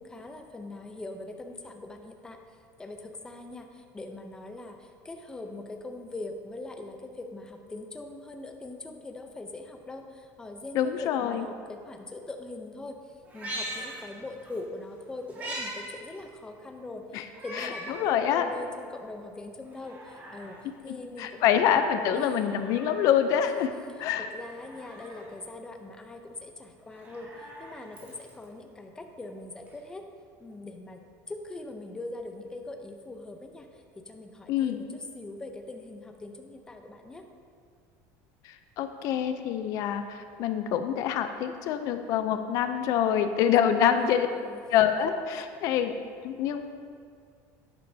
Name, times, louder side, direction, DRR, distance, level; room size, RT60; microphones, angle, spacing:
voice 1, 0.0-2.4 2.8-21.8 22.1-22.6 24.3-30.1 30.4-37.3 43.7-44.6, left 2 dB, 10° left, 5 dB, 0.6 m, -42 dB
voice 2, 10.7-11.5 17.1-17.2 17.6-18.4 21.2-23.7 24.0-24.3 34.5-34.8 38.4-44.3 44.7-46.0 46.2-46.6, left 9 dB, 50° left, 8 dB, 0.5 m, -26 dB
Meow, 13.2-14.6 14.9-15.8 16.2-16.3 17.3-18.0 18.5-18.6 19.6-20.6 22.1-23.1 24.5-25.3 26.8-28.4 29.7-29.8, right 1 dB, 25° right, 2.0 m, -41 dB
11.0 x 9.9 x 2.8 m, 2.2 s
cardioid pair, 165°, 8 cm